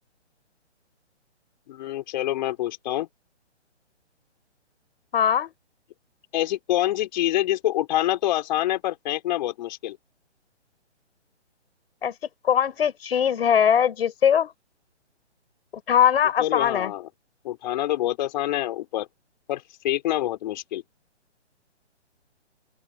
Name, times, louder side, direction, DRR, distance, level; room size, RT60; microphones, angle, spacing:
voice 1, 1.7-3.1 6.3-10.0 16.4-17.1 17.4-19.1 19.5-20.8, left 14 dB, 40° left, 4.8 m, -26 dB
voice 2, 5.1-5.5 12.0-12.1 12.4-14.5 15.9-16.9, left 8 dB, 55° left, 6.4 m, -21 dB
open air
figure-of-eight pair, 140°, 35 cm